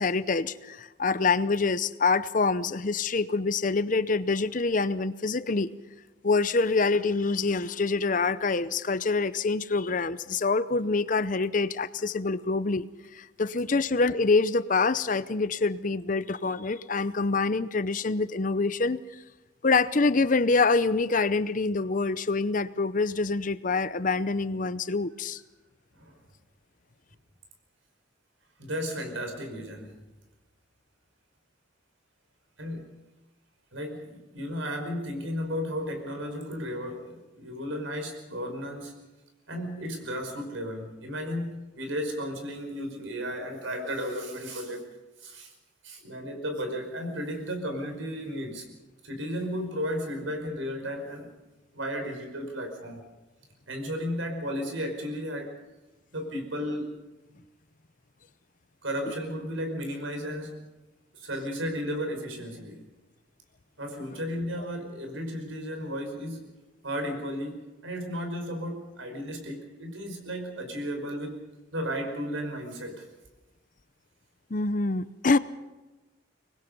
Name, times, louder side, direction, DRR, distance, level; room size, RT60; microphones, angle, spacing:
voice 1, 0.0-5.7 6.2-19.0 19.6-25.4 74.5-75.4, left 3 dB, 40° left, 15 dB, 0.7 m, -26 dB
voice 2, 28.6-29.9 32.6-32.9 33.7-38.9 39.5-44.9 45.2-45.5 45.8-48.7 49.0-51.3 51.7-53.0 53.7-55.6 56.1-56.9 58.8-60.7 61.1-62.9 63.8-66.4 66.8-71.4 71.7-73.1, equal, 85° right, 5 dB, 5.3 m, -34 dB
25.0 x 20.5 x 5.4 m, 1.1 s
head